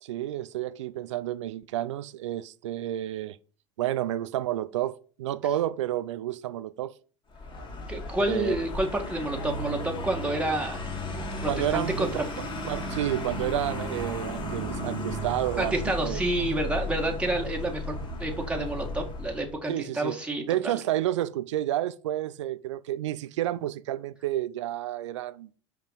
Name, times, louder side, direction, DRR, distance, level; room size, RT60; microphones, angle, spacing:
voice 1, 0.0-3.4 3.8-6.9 8.2-8.6 11.5-16.2 19.7-25.5, right 13 dB, 80° right, 0.5 m, -30 dB
Vehicle, 7.3-19.6, left 1 dB, 30° left, 2.5 m, -34 dB
voice 2, 7.9-10.8 11.4-12.1 15.6-20.7, right 1 dB, 5° right, 1.9 m, -29 dB
5.7 x 5.1 x 5.9 m
hypercardioid pair, 85°, 15 cm